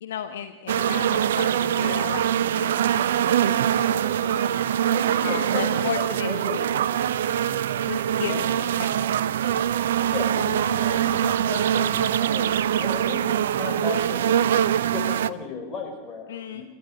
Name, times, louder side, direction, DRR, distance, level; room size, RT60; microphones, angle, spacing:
voice 1, 0.0-2.2 2.5-2.8 3.4-3.5 3.9-4.5 5.2-6.7 7.9-9.1 16.3-16.6, left 9 dB, 60° left, 8 dB, 1.1 m, -34 dB
sound 1, 0.7-15.3, right 10 dB, 60° right, 0.7 m, -23 dB
voice 2, 4.9-5.9 6.2-6.6 8.3-8.5 10.1-12.5 12.8-14.4 14.8-16.6, left 4 dB, 25° left, 4 dB, 5.2 m, -35 dB
27.5 x 13.5 x 8.9 m, 1.2 s
figure-of-eight pair, 90°, 0 cm